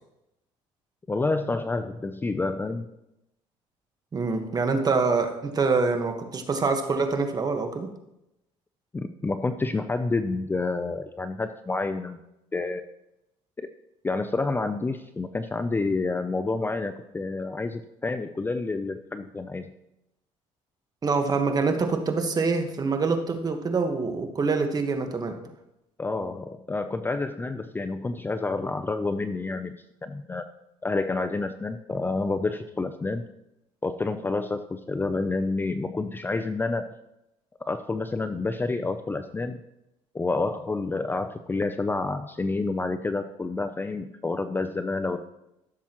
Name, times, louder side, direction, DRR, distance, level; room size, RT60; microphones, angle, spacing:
voice 1, 1.1-2.9 8.9-12.2 12.5-12.8 14.0-19.7 26.0-30.4 30.8-33.2 33.8-36.9 37.7-39.6 40.1-45.3, left 3 dB, 15° left, 9 dB, 0.5 m, -29 dB
voice 2, 4.1-7.9 21.0-25.4, right 4 dB, 30° right, 5 dB, 1.4 m, -25 dB
14.5 x 7.2 x 3.0 m, 0.88 s
cardioid pair, 100°, 12 cm